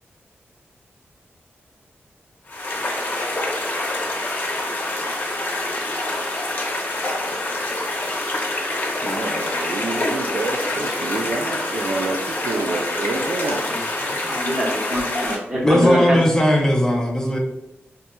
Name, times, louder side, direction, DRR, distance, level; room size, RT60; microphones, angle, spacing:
sound 1, 2.5-15.4, left 1 dB, 45° left, 0.7 m, -26 dB
voice 1, 7.4-7.7 8.9-13.6, right 3 dB, 70° right, 0.4 m, -28 dB
voice 2, 14.0-16.2, equal, 25° right, 1.0 m, -24 dB
voice 3, 15.6-17.4, equal, 15° left, 0.6 m, -17 dB
4.1 x 2.7 x 2.2 m
wide cardioid pair, 75°, 4 cm